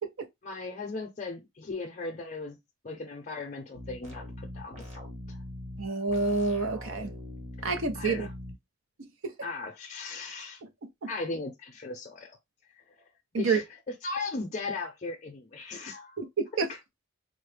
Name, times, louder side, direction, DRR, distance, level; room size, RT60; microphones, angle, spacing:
voice 1, 0.4-2.6 2.8-5.4 7.9-8.3 9.4-10.6 11.1-12.4 13.3-13.6 14.0-16.2 16.7-16.8, left 3 dB, 35° left, 0.5 m, -37 dB
sound 1, 3.7-8.5, left 1 dB, 35° right, 1.0 m, -42 dB
voice 2, 5.8-7.1 7.6-8.3 11.0-11.1 13.3-13.6 16.2-16.7, right 4 dB, 75° right, 0.7 m, -28 dB
3.8 x 2.0 x 3.3 m
head